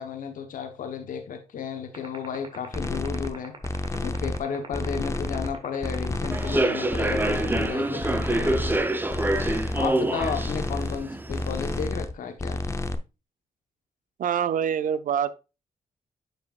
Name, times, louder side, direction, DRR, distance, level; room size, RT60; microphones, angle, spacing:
voice 1, 0.0-3.6 3.9-8.7 9.7-12.6, left 6 dB, 75° left, 1.1 m, -33 dB
sound 1, 1.9-9.5, right 5 dB, 40° right, 1.6 m, -39 dB
sound 2, 2.7-3.3 3.6-4.4 4.7-5.5 5.8-6.6 6.9-7.7 8.0-8.8 9.1-9.9 10.2-11.0 11.3-12.1 12.4-13.0, left 2 dB, 20° left, 0.7 m, -30 dB
Human voice / Subway metro underground, 6.3-11.9, right 1 dB, 15° right, 0.7 m, -27 dB
voice 2, 14.2-15.3, right 8 dB, 75° right, 0.6 m, -25 dB
9.0 x 5.5 x 2.5 m
cardioid pair, 80°, 14 cm